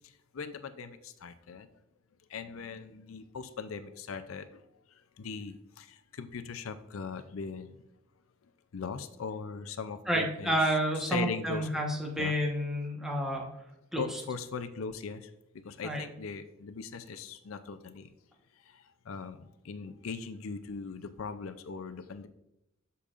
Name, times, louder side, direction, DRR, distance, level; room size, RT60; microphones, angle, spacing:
voice 1, 0.0-1.7 2.3-4.6 5.2-7.8 8.7-10.6 11.1-11.7 12.2-12.3 14.0-18.1 18.7-22.3, left 5 dB, 85° left, 10 dB, 0.5 m, -40 dB
voice 2, 10.1-13.5 13.9-14.1 15.8-16.0, equal, ahead, -1 dB, 1.2 m, -30 dB
8.4 x 7.0 x 2.5 m, 0.87 s
head